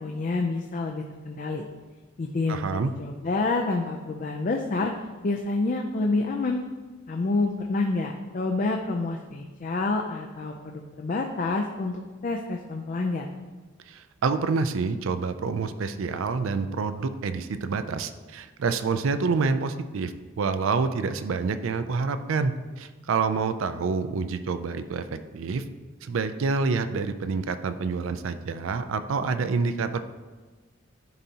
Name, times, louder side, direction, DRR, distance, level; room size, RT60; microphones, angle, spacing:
voice 1, 0.0-1.6 2.2-2.7 3.0-4.9 5.2-6.6 7.1-13.3, left 3 dB, 40° left, 2 dB, 0.4 m, -28 dB
voice 2, 2.5-2.9 13.9-25.6 26.0-30.0, right 4 dB, 80° right, 10 dB, 0.4 m, -27 dB
10.5 x 4.1 x 2.8 m, 1.3 s
head